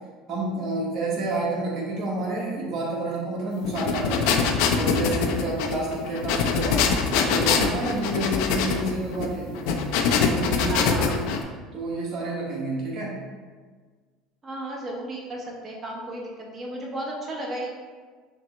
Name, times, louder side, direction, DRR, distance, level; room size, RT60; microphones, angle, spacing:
voice 1, 0.3-4.3 4.7-6.8 7.2-9.6 10.1-11.3 11.7-13.2, right 2 dB, 45° right, -5 dB, 1.2 m, -29 dB
sound 1, 3.6-11.4, left 5 dB, 75° left, 0.4 m, -23 dB
voice 2, 10.6-11.2 14.4-17.7, right 1 dB, 30° right, -2 dB, 0.9 m, -34 dB
5.7 x 2.1 x 2.9 m, 1.5 s
supercardioid pair, 110°, 0 cm